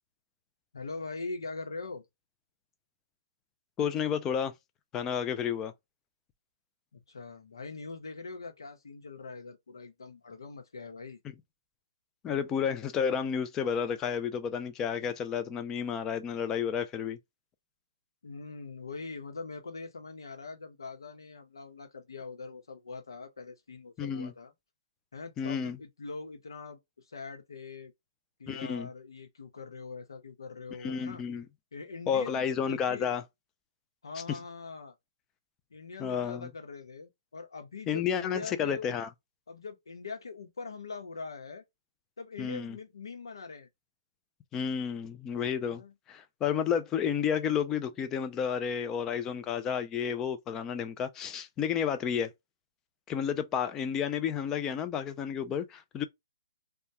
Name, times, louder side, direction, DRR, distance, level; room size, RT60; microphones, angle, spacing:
voice 1, 0.7-2.0 6.9-11.2 18.2-24.5 25.1-27.9 28.4-31.2 31.7-33.1 34.0-34.9 35.7-39.0 39.5-41.6 42.2-43.7 45.6-45.9, left 4 dB, 80° left, 0.9 m, -42 dB
voice 2, 3.8-4.5 4.9-5.7 12.2-17.2 24.0-24.3 25.4-25.8 28.5-28.9 30.8-31.5 32.1-33.2 34.3-34.4 36.0-36.5 37.9-39.1 42.4-42.8 44.5-45.8 46.1-52.3 53.1-56.0, left 7 dB, 20° left, 0.4 m, -31 dB
2.3 x 2.2 x 2.8 m
hypercardioid pair, 145°, 2 cm